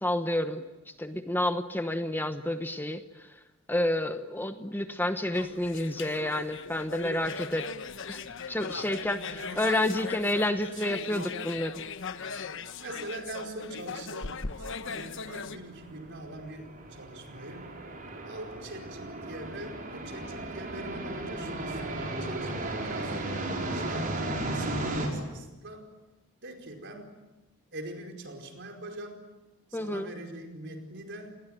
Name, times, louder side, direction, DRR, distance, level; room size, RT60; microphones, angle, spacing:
voice 1, 0.0-0.6 1.0-3.0 3.7-7.7 8.1-8.2 8.5-11.8 29.7-30.1, left 1 dB, 10° left, 8 dB, 1.0 m, -29 dB
sound 1, 5.3-15.6, left 5 dB, 65° left, 1.2 m, -39 dB
voice 2, 9.2-9.6 10.2-11.4 12.8-17.8 18.2-21.8 22.2-24.1 24.5-25.9 26.4-27.2 27.7-29.3 29.7-31.4, right 1 dB, 60° right, 3 dB, 4.8 m, -43 dB
sound 2, 14.5-25.1, right 1 dB, 40° right, 5.3 m, -35 dB
29.0 x 20.0 x 9.1 m, 1.1 s
head